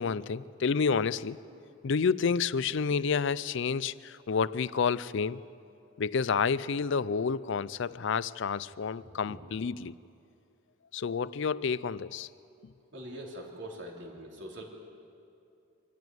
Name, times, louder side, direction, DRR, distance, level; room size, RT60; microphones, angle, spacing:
voice 1, 0.0-1.4 1.8-5.4 6.0-9.9 10.9-12.3, left 5 dB, 60° left, 19 dB, 0.4 m, -29 dB
voice 2, 1.5-1.8 9.0-9.4 12.9-14.6, right 1 dB, 60° right, -1 dB, 3.6 m, -44 dB
24.5 x 14.0 x 9.5 m, 2.6 s
head